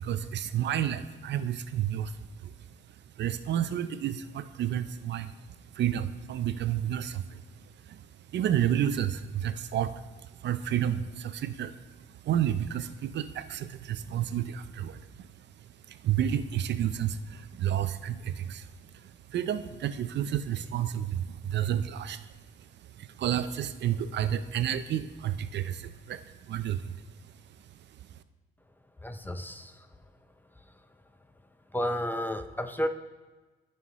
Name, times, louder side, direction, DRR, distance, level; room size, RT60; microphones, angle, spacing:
voice 1, 0.0-2.5 3.2-5.4 5.7-8.1 8.3-11.8 12.1-15.5 15.9-22.3 22.6-27.0 27.2-27.3 27.7-28.2, right 10 dB, 60° right, 12 dB, 0.5 m, -31 dB
voice 2, 29.0-29.9 31.7-32.9, equal, 10° left, 8 dB, 0.5 m, -32 dB
14.0 x 5.7 x 3.1 m, 1.2 s
cardioid pair, 90°, 20 cm